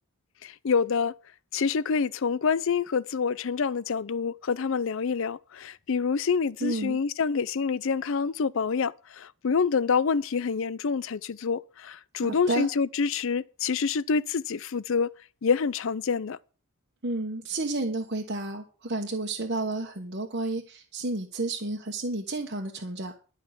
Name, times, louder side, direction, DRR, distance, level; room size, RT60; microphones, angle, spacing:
voice 1, 0.4-1.1 1.5-15.1 15.4-16.4, left 5 dB, 60° left, 0.5 m, -27 dB
voice 2, 6.6-7.0 12.2-12.7 17.0-23.1, right 2 dB, 50° right, 1.3 m, -31 dB
12.0 x 5.8 x 8.1 m
head